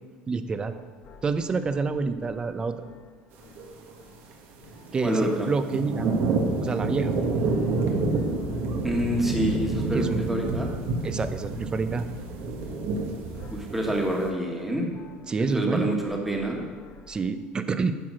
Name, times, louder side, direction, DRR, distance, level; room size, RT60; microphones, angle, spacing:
voice 1, 0.3-0.8 1.2-2.9 4.9-6.1 6.6-7.1 9.9-10.2 11.0-12.0 15.3-15.9 17.1-17.9, right 4 dB, 20° right, 10 dB, 0.6 m, -28 dB
sound 1, 0.7-4.3 4.6-17.2, left 5 dB, 45° left, 0.9 m, -47 dB
sound 2, 3.6-3.9 4.7-14.3, right 3 dB, 60° right, 1.3 m, -29 dB
voice 2, 5.0-5.5 8.8-10.7 13.5-14.9 15.5-16.6, right 1 dB, 5° right, 0 dB, 1.5 m, -27 dB
10.0 x 4.7 x 6.2 m, 1.5 s
supercardioid pair, 125°, 4 cm